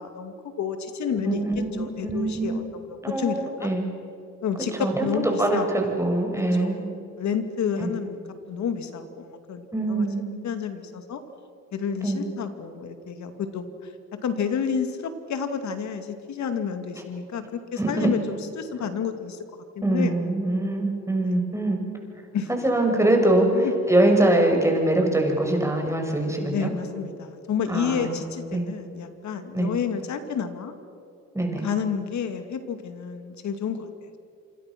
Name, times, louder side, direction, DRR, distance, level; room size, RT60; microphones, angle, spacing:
voice 1, 0.0-1.4 1.8-3.7 4.4-6.1 6.6-6.9 7.2-8.2 8.5-10.1 10.4-11.2 11.7-13.7 14.1-18.2 18.5-19.4 19.9-20.1 22.3-22.5 23.5-23.7 26.4-30.7 31.6-33.9, left 6 dB, 70° left, 8 dB, 2.6 m, -30 dB
voice 2, 1.2-2.6 3.0-3.9 4.8-6.8 7.8-7.9 9.7-10.2 12.0-12.2 17.8-18.1 18.8-18.9 19.8-21.8 22.6-26.7 27.7-28.2 28.5-28.7 29.5-29.7 31.3-31.6, right 1 dB, 10° right, 2 dB, 5.9 m, -23 dB
27.5 x 26.0 x 6.2 m, 2.7 s
cardioid pair, 90°, 30 cm